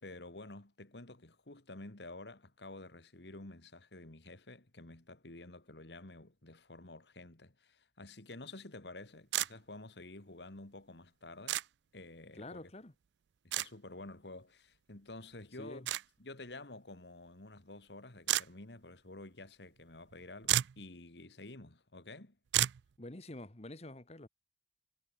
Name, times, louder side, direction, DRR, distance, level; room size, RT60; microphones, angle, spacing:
voice 1, 0.0-11.6 11.9-12.7 13.4-15.9 16.2-22.4, left 2 dB, 75° left, 2.3 m, -50 dB
sound 1, 9.3-9.5 11.5-11.6 13.5-13.7 15.9-16.0 18.3-18.5 20.1-20.2 20.4-20.8 22.5-22.8, right 14 dB, 80° right, 0.4 m, -30 dB
voice 2, 12.3-12.9 15.5-15.9 23.0-24.3, left 1 dB, 35° left, 1.5 m, -47 dB
head